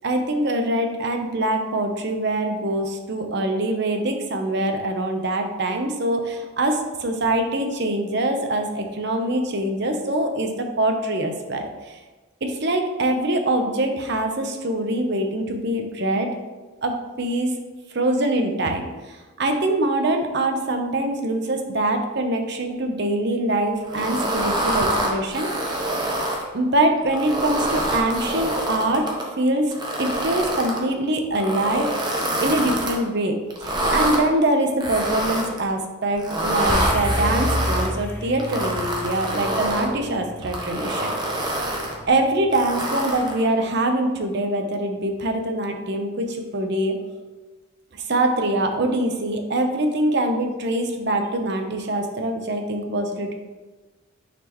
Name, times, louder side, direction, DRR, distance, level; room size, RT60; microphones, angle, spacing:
voice 1, 0.0-12.0 12.4-16.3 16.8-17.6 17.9-25.5 26.5-31.9 32.4-41.4 42.1-47.0 47.9-53.3, right 1 dB, 50° right, 5 dB, 0.7 m, -24 dB
sound 1, 23.9-26.4 27.0-29.2 29.7-30.8 31.3-33.0 33.5-34.2 34.8-35.6 36.2-37.9 38.4-39.9 40.4-41.9 42.5-43.4, right 1 dB, 20° right, 0.9 m, -26 dB
sound 2, 36.7-41.2, left 1 dB, 10° left, 0.5 m, -28 dB
9.1 x 4.3 x 3.0 m, 1.2 s
head